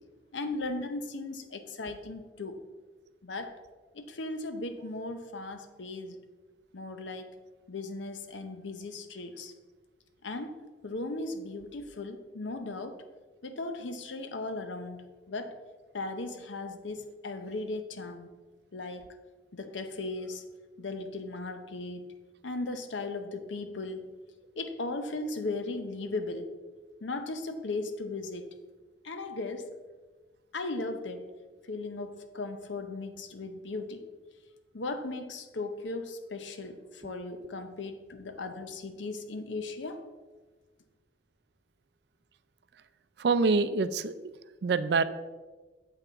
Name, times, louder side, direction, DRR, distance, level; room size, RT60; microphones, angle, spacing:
voice 1, 0.3-2.7 3.2-3.6 3.9-6.2 6.7-7.3 7.7-9.5 10.2-10.6 10.8-13.0 13.4-15.6 15.9-18.3 18.7-19.2 19.5-20.4 20.8-22.1 22.4-24.1 24.6-26.5 27.0-28.5 29.0-29.7 30.5-31.3 31.7-34.0 34.7-40.1, left 2 dB, 85° left, 8 dB, 0.8 m, -37 dB
voice 2, 43.2-44.1 44.6-45.0, right 4 dB, 60° right, 13 dB, 0.4 m, -25 dB
7.9 x 5.8 x 4.0 m, 1.3 s
head